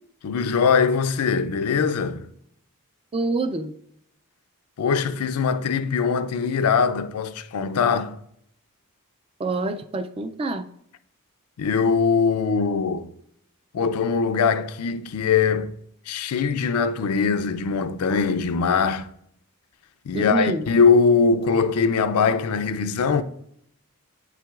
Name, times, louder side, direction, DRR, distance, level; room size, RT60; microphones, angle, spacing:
voice 1, 0.2-2.3 4.8-8.2 11.6-13.1 13.7-15.7 16.1-19.1 20.1-23.2, left 5 dB, 80° left, 0.4 m, -21 dB
voice 2, 3.1-3.7 9.4-10.7 20.1-20.6, right 3 dB, 25° right, 0.3 m, -26 dB
8.0 x 5.8 x 2.4 m
head